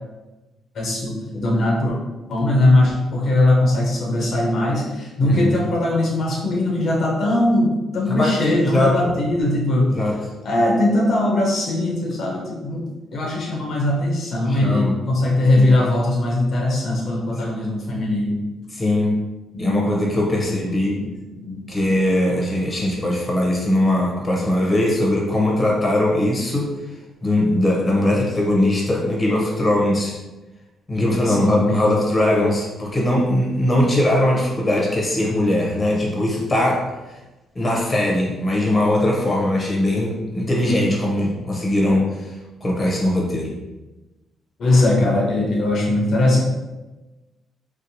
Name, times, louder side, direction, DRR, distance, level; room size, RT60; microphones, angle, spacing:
voice 1, 0.7-2.0 2.3-9.9 10.4-12.8 13.1-18.4 19.5-20.0 20.4-21.6 31.2-32.0 44.6-46.4, left 1 dB, 60° left, -2 dB, 0.6 m, -20 dB
voice 2, 5.2-5.5 8.1-9.1 9.9-10.2 14.5-15.0 18.7-19.3 19.6-21.0 21.7-26.8 27.2-30.2 30.9-36.9 37.5-42.3 42.6-43.5, left 1 dB, 25° left, -2 dB, 0.7 m, -20 dB
2.7 x 2.0 x 2.8 m, 1.1 s
cardioid pair, 90°, 0 cm